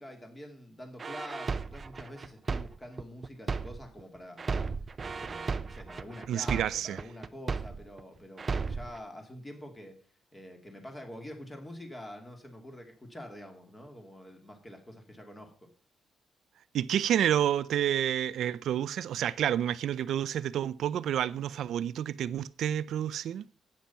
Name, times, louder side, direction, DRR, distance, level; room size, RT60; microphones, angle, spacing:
voice 1, 0.0-4.7 5.1-9.9 10.3-15.7, left 1 dB, 15° left, 2.5 m, -46 dB
sound 1, 1.0-4.0 4.4-8.0 8.4-9.0, right 4 dB, 25° right, 0.6 m, -34 dB
voice 2, 6.3-7.0 16.7-23.4, right 10 dB, 70° right, 0.6 m, -29 dB
11.5 x 8.8 x 5.7 m
cardioid pair, 165°, 0 cm